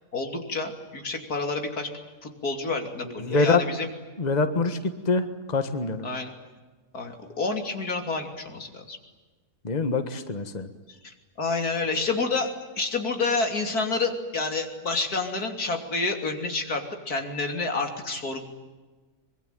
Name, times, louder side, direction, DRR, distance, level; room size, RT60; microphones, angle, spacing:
voice 1, 0.1-1.9 2.2-3.9 6.0-6.3 6.9-9.0 11.0-12.5 12.8-18.4, left 3 dB, 90° left, 4 dB, 3.5 m, -29 dB
voice 2, 3.2-3.6 4.2-6.1 9.6-10.7, left 3 dB, 30° left, 9 dB, 1.6 m, -25 dB
24.5 x 22.5 x 9.2 m, 1.3 s
omnidirectional pair, 1.6 m